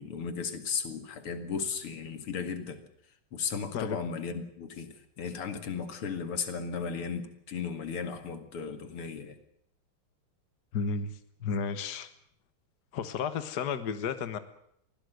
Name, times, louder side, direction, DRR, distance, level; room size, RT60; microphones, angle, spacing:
voice 1, 0.0-2.8 3.3-9.4, left 6 dB, 90° left, 8 dB, 3.0 m, -35 dB
voice 2, 10.7-11.1 11.4-12.1 12.9-14.4, left 6 dB, 50° left, 10 dB, 1.8 m, -32 dB
23.5 x 17.0 x 8.0 m, 0.72 s
omnidirectional pair, 2.4 m